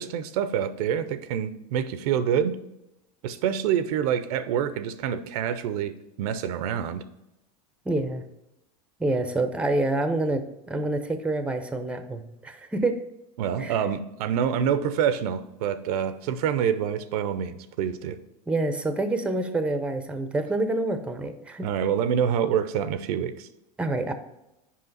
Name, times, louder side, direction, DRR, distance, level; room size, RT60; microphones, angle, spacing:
voice 1, 0.0-2.5 3.2-5.9 6.2-7.0 13.4-18.2 21.6-23.5, right 8 dB, 70° right, 12 dB, 0.6 m, -26 dB
voice 2, 7.9-8.2 9.0-13.0 13.6-13.7 18.5-21.7 23.8-24.1, right 2 dB, 5° right, 9 dB, 0.6 m, -27 dB
5.6 x 5.0 x 4.0 m, 0.89 s
hypercardioid pair, 100°, 20 cm